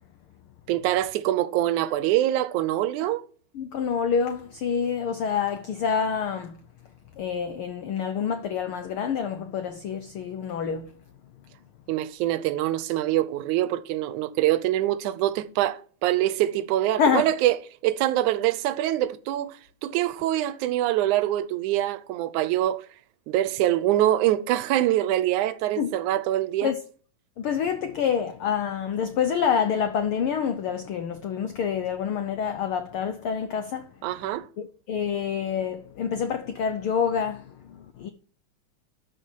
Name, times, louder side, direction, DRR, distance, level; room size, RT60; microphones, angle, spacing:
voice 1, 0.7-3.2 11.9-17.5 17.8-19.6 19.8-22.8 23.3-26.7 34.0-34.5, right 13 dB, 90° right, 2.2 m, -24 dB
voice 2, 3.5-6.6 7.2-10.9 17.0-17.3 25.8-25.9 26.6-26.8 27.4-33.9 34.2-34.3 34.6-38.1, left 7 dB, 85° left, 1.2 m, -27 dB
12.5 x 6.4 x 4.6 m
omnidirectional pair, 3.4 m